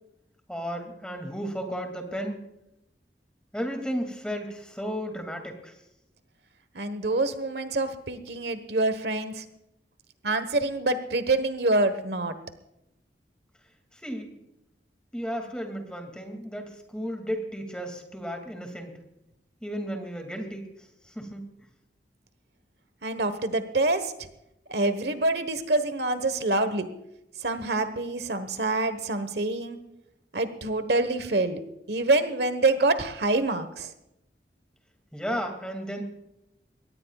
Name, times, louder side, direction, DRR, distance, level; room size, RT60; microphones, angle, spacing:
voice 1, 0.5-2.4 3.5-5.7 13.9-14.3 15.1-19.0 19.6-20.6 21.1-21.4 35.1-36.0, equal, 5° left, 4 dB, 2.4 m, -34 dB
voice 2, 6.7-9.4 10.2-12.3 23.0-24.1 24.7-26.8 27.4-29.8 30.3-31.6 31.9-33.9, right 2 dB, 70° right, 10 dB, 1.3 m, -26 dB
23.0 x 18.0 x 2.4 m, 0.85 s
head